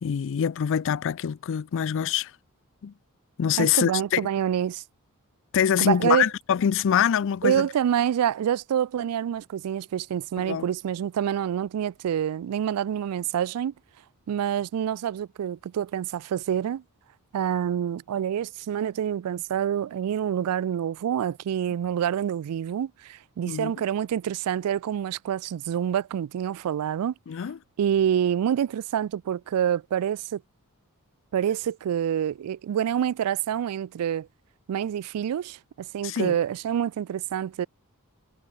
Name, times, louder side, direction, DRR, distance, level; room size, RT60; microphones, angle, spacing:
voice 1, 0.0-2.3 2.8-2.9 3.4-4.3 5.5-7.7 10.4-10.7 23.5-23.7 27.3-27.6 36.0-36.4, left 8 dB, 60° left, 0.4 m, -24 dB
voice 2, 3.6-4.8 5.8-6.3 7.4-13.7 14.3-16.8 17.3-27.1 27.8-30.4 31.3-34.3 34.7-37.7, right 9 dB, 80° right, 0.3 m, -27 dB
head